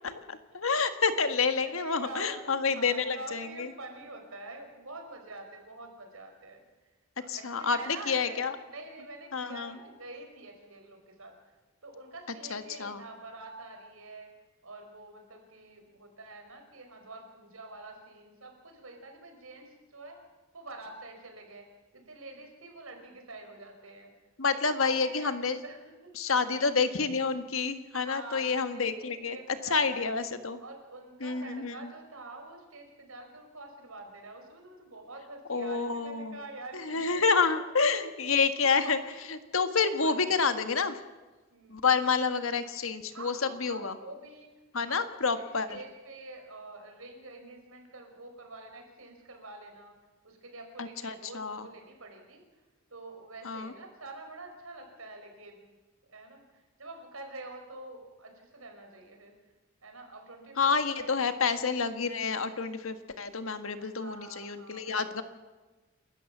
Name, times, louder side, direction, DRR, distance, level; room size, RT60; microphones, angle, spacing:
voice 1, 0.5-3.7 7.3-8.5 9.3-9.7 12.5-13.0 24.4-25.6 26.2-29.4 29.7-30.6 31.2-31.7 35.5-36.4 36.7-39.0 39.3-41.0 41.7-43.3 43.6-44.0 44.7-45.8 50.8-51.6 53.4-53.7 60.6-65.2, left 5 dB, 75° left, 9 dB, 1.6 m, -28 dB
voice 2, 1.6-6.6 7.2-11.3 11.8-14.3 14.6-20.2 20.5-21.7 21.9-24.1 24.5-25.4 25.6-27.1 27.9-30.1 30.6-37.3 38.6-39.1 39.8-40.6 41.5-41.8 43.1-44.5 44.8-45.0 45.3-49.9 50.2-52.4 52.9-55.6 56.1-59.3 59.8-61.4 63.8-65.2, right 2 dB, 90° right, 4 dB, 5.1 m, -46 dB
28.5 x 13.5 x 7.3 m, 1.2 s
head